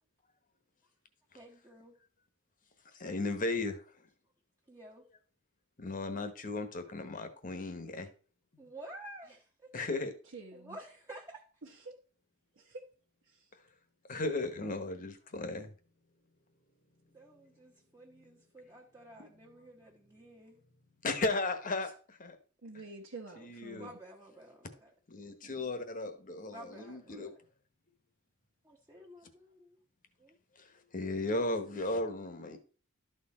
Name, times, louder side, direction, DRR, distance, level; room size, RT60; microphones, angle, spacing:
voice 1, 1.3-2.0 4.7-5.1 8.6-9.7 10.5-11.6 17.1-20.6 21.8-21.9 23.8-24.9 26.4-27.4 28.6-29.8 30.2-30.4, right 1 dB, 15° right, 1.2 m, -51 dB
voice 2, 2.9-3.8 5.8-8.1 9.7-10.1 14.1-15.7 21.0-22.4 23.4-23.9 25.1-27.3 30.9-32.6, left 2 dB, 40° left, 1.1 m, -35 dB
voice 3, 10.3-10.8 11.6-11.9 12.6-12.8 13.2-13.5 22.6-24.0 25.4-25.7, right 3 dB, 70° right, 1.3 m, -48 dB
12.5 x 4.4 x 4.3 m
head